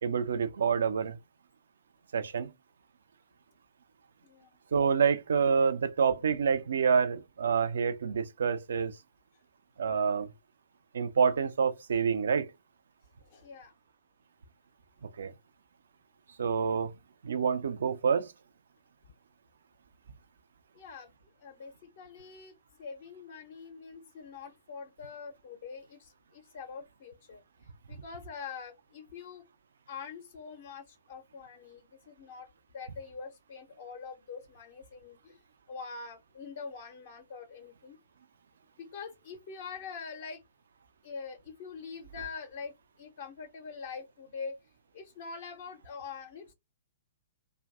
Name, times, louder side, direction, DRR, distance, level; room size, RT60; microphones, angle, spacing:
voice 1, 0.0-1.2 2.1-2.5 4.7-8.9 9.8-10.3 10.9-12.5 15.2-15.3 16.4-16.9 17.2-18.3, right 6 dB, 60° right, 0.4 m, -27 dB
voice 2, 13.2-13.7 20.7-21.1 21.4-27.4 27.9-29.4 29.9-32.5 32.7-35.4 35.7-38.0 38.8-40.4 41.0-44.6 44.9-46.5, left 5 dB, 45° left, 0.5 m, -44 dB
2.5 x 2.2 x 3.4 m
figure-of-eight pair, 115°, 0 cm